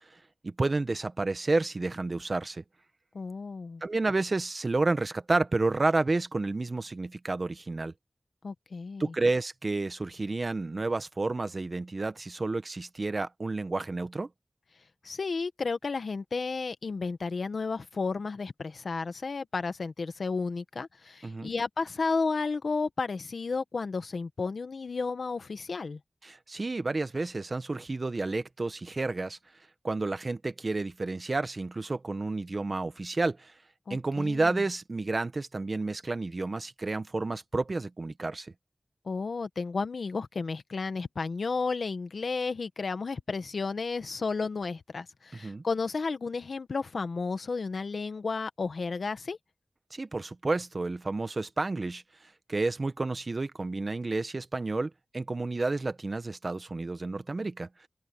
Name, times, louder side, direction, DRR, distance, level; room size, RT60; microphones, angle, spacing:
voice 1, 0.4-2.6 3.8-7.9 9.0-14.3 21.2-21.5 26.2-29.4 29.8-33.5 33.9-38.5 45.4-45.6 49.9-52.0 52.5-57.7, right 3 dB, 55° right, 1.3 m, -30 dB
voice 2, 3.1-3.8 8.4-9.1 15.0-26.0 33.9-34.6 39.0-49.4, left 4 dB, 80° left, 1.4 m, -32 dB
cardioid pair, 50°, 0 cm